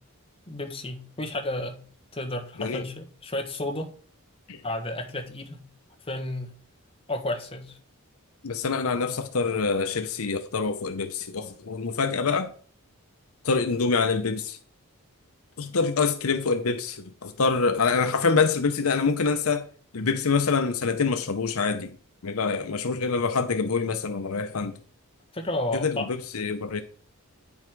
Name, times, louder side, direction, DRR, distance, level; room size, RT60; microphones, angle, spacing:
voice 1, 0.5-1.8 2.1-3.9 4.6-5.6 6.0-6.5 7.1-7.8 25.3-26.1, left 1 dB, 25° left, 1.5 m, -32 dB
voice 2, 8.4-12.5 13.4-14.6 15.6-19.6 19.9-21.9 22.2-24.8 25.7-26.8, left 4 dB, 70° left, 0.7 m, -25 dB
9.6 x 5.5 x 4.6 m
head